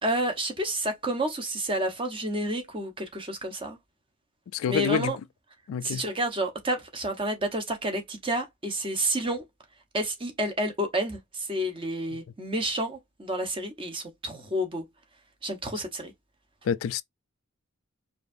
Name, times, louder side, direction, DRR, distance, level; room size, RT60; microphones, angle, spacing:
voice 1, 0.0-3.8 4.7-5.2 5.8-9.4 9.9-14.8 15.4-16.1, right 1 dB, 25° right, 0.9 m, -30 dB
voice 2, 4.5-5.1 5.7-6.0 16.7-17.0, left 7 dB, 75° left, 0.3 m, -27 dB
4.8 x 2.5 x 2.5 m
head